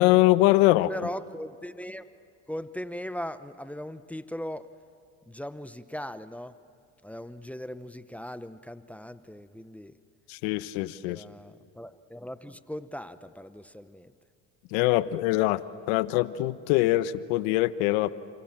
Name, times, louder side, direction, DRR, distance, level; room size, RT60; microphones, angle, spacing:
voice 1, 0.0-0.9 10.3-11.2 14.7-18.1, left 17 dB, 75° left, 15 dB, 1.0 m, -23 dB
voice 2, 0.9-2.1 2.5-4.7 5.3-6.5 7.0-9.9 11.1-14.1, equal, 5° left, 12 dB, 0.8 m, -39 dB
30.0 x 26.0 x 7.5 m, 2.4 s
supercardioid pair, 105°, 33 cm